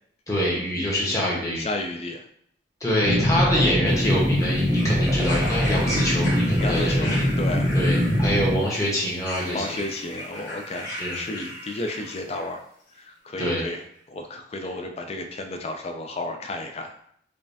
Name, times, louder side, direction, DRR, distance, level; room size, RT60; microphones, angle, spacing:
voice 1, 0.3-1.7 2.8-7.2 7.7-9.8 10.8-11.2 13.4-13.6, equal, 20° left, -4 dB, 1.1 m, -25 dB
voice 2, 1.6-2.3 6.6-7.7 9.5-12.6 13.0-16.9, left 2 dB, 35° left, 5 dB, 0.4 m, -32 dB
sound 1, 3.0-8.5, equal, 15° right, 0.9 m, -22 dB
sound 2, 3.9-12.5 13.4-13.5, equal, 85° left, 1.3 m, -36 dB
5.1 x 2.3 x 2.7 m, 0.67 s
head